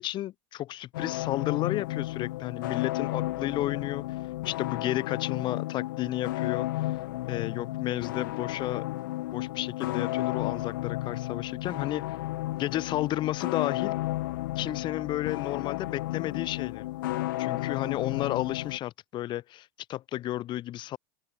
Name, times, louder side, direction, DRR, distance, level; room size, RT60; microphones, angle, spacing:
voice 1, 0.0-4.0 4.4-6.9 7.3-8.9 9.3-12.2 12.6-14.0 14.6-16.8 17.4-21.0, left 14 dB, 45° left, 1.6 m, -32 dB
sound 1, 0.9-18.8, left 17 dB, 75° left, 1.7 m, -33 dB
open air
hypercardioid pair, 90°, 11 cm